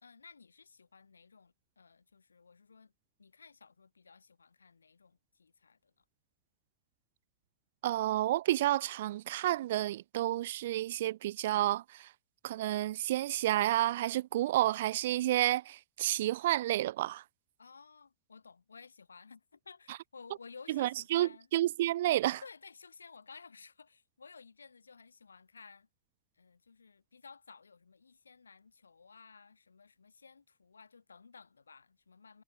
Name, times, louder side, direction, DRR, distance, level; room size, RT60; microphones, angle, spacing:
voice 1, 0.0-2.9 3.2-6.0 17.6-21.5 22.4-25.9 26.4-32.4, left 5 dB, 75° left, 4.6 m, -55 dB
voice 2, 7.8-12.1 12.4-17.2 20.7-22.4, right 14 dB, 55° right, 0.9 m, -30 dB
figure-of-eight pair, 90°, 0 cm